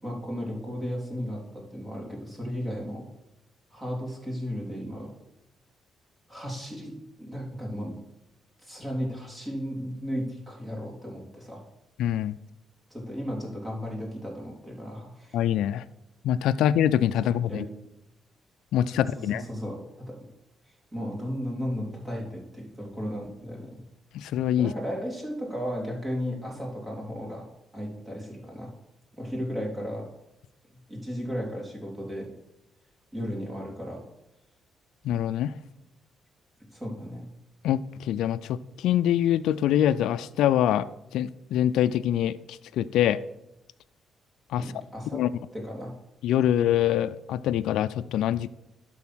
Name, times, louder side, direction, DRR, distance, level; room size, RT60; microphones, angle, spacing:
voice 1, 0.0-3.1 3.7-5.1 6.3-8.0 8.6-11.6 12.9-15.4 17.2-17.7 18.9-20.2 20.9-23.8 24.6-27.4 27.7-28.7 29.2-30.1 30.9-32.3 33.1-34.0 36.7-37.2 44.6-45.2 45.5-45.9, equal, 20° right, -3 dB, 3.5 m, -35 dB
voice 2, 12.0-12.3 15.3-15.8 16.2-17.6 18.7-19.4 24.1-24.7 35.1-35.5 37.6-37.8 38.1-40.9 41.1-42.4 42.8-43.2 44.5-44.6 45.1-45.3 46.2-48.5, left 11 dB, 85° left, 14 dB, 0.3 m, -24 dB
11.5 x 4.2 x 6.2 m, 0.88 s
cardioid pair, 90°, 0 cm